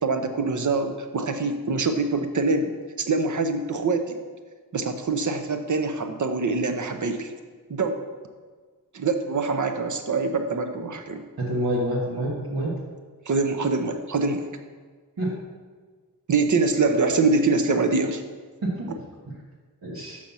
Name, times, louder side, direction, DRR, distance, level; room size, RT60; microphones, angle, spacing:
voice 1, 0.0-2.7 3.0-4.2 4.7-7.3 7.7-8.1 8.9-11.2 13.3-14.5 16.3-18.2, right 3 dB, 55° right, 7 dB, 0.8 m, -24 dB
voice 2, 11.4-12.7 15.2-15.3 18.6-18.9 19.8-20.2, right 1 dB, 75° right, -6 dB, 1.5 m, -27 dB
6.4 x 5.8 x 5.5 m, 1.5 s
wide cardioid pair, 85°, 36 cm